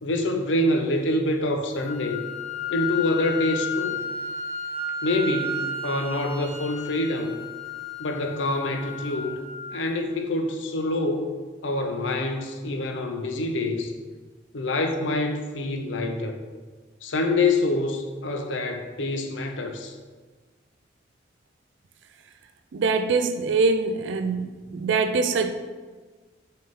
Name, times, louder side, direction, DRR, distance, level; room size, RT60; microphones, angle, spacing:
voice 1, 0.0-2.2 2.7-4.0 5.0-7.4 8.0-9.4 9.7-11.3 11.6-13.9 14.5-16.4 17.0-19.9, left 2 dB, 85° left, 0.7 m, -26 dB
Wind instrument woodwind instrument, 1.8-9.8, left 3 dB, 10° left, 1.8 m, -33 dB
voice 2, 22.7-25.5, right 4 dB, 75° right, 0.4 m, -23 dB
6.3 x 4.6 x 3.6 m
head